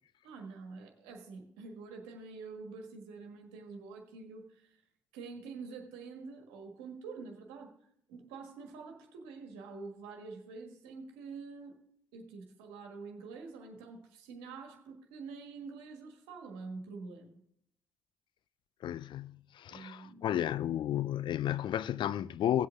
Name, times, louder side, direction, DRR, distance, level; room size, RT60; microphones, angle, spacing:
voice 1, 0.2-4.7 5.1-7.7 8.1-11.8 12.1-17.4 19.7-20.3, right 4 dB, 75° right, 1.5 m, -46 dB
voice 2, 18.8-22.7, left 11 dB, 55° left, 0.4 m, -33 dB
17.0 x 7.9 x 3.5 m
hypercardioid pair, 45°, 9 cm